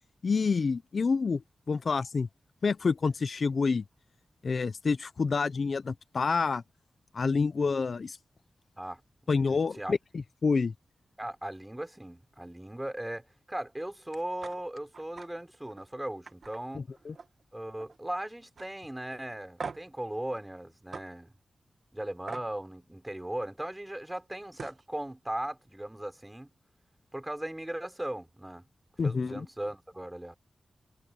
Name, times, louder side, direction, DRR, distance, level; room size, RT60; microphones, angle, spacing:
voice 1, 0.2-1.4 1.7-2.3 2.6-3.8 4.4-6.6 7.1-8.2 9.3-10.7 16.7-17.1 29.0-29.5, left 4 dB, 55° left, 0.5 m, -28 dB
voice 2, 8.8-10.0 11.2-16.8 17.5-21.3 21.9-26.5 27.1-28.7 29.0-30.3, right 1 dB, 10° right, 5.3 m, -38 dB
sound 1, 14.4-14.6 14.9-15.3 15.7-15.8 16.3-17.4 17.7-18.1 18.6-18.7 19.6-20.0 20.9-21.1 22.3-22.5 24.1-24.2 24.5-24.8, right 5 dB, 65° right, 1.5 m, -42 dB
wide cardioid pair, 95°, 0 cm